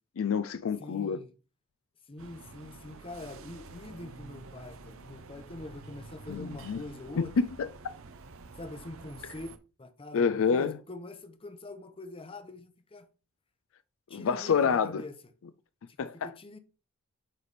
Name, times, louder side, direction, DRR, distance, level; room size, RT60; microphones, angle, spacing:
voice 1, 0.2-1.2 6.3-6.8 7.2-7.7 10.1-10.8 14.1-15.0 16.0-16.3, left 6 dB, 65° left, 0.4 m, -28 dB
voice 2, 0.8-1.3 2.1-7.3 8.6-9.5 9.8-13.1 14.1-15.1 16.0-16.6, left 2 dB, 25° left, 0.8 m, -44 dB
sound 1, 2.2-9.6, right 3 dB, 65° right, 0.7 m, -49 dB
9.1 x 3.4 x 4.1 m
head